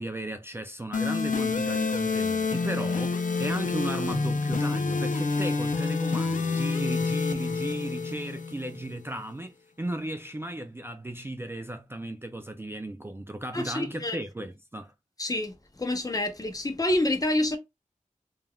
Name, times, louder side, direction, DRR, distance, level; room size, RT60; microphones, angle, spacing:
voice 1, 0.0-14.9, right 1 dB, 15° right, 0.3 m, -35 dB
sound 1, 0.9-8.9, left 4 dB, 75° left, 0.5 m, -28 dB
voice 2, 13.5-14.2 15.2-17.6, left 1 dB, 25° left, 0.6 m, -28 dB
3.2 x 2.4 x 2.3 m
wide cardioid pair, 45°, 14 cm